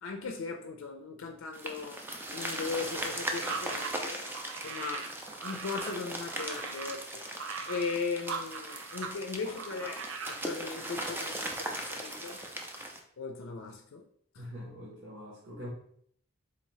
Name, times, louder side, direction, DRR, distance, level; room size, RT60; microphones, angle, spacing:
voice 1, 0.0-2.0 2.3-4.2 4.6-5.1 5.4-7.2 7.7-12.4 13.2-14.1 14.3-14.5, left 4 dB, 85° left, 0.4 m, -38 dB
sound 1, 1.5-13.0, right 1 dB, 10° right, 0.4 m, -39 dB
sound 2, 3.3-9.2 9.4-10.4, right 5 dB, 85° right, 0.5 m, -40 dB
voice 2, 14.3-15.7, equal, 65° right, 1.1 m, -43 dB
4.0 x 2.7 x 3.0 m
head